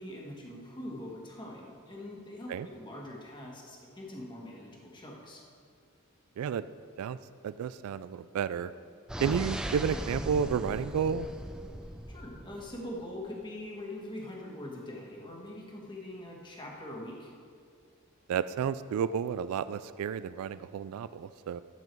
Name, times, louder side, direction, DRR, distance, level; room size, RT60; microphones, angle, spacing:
voice 1, 0.0-5.4 12.1-17.3, left 1 dB, 20° left, -2 dB, 1.6 m, -43 dB
voice 2, 7.4-8.7 9.2-11.3 18.3-21.6, right 7 dB, 80° right, 16 dB, 0.3 m, -31 dB
sound 1, 9.1-12.9, equal, 5° right, 0.4 m, -38 dB
12.0 x 7.7 x 4.5 m, 2.3 s
head